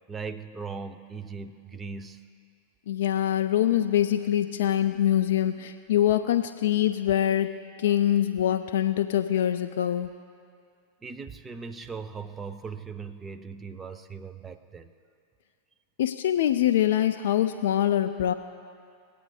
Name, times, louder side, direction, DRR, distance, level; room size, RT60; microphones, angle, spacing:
voice 1, 0.1-2.3 11.0-14.9, right 5 dB, 15° right, 8 dB, 0.5 m, -39 dB
voice 2, 2.9-7.5 7.8-10.1 16.0-18.3, left 11 dB, 55° left, 8 dB, 0.3 m, -24 dB
21.5 x 8.3 x 2.2 m, 2.3 s
figure-of-eight pair, 90°, 0 cm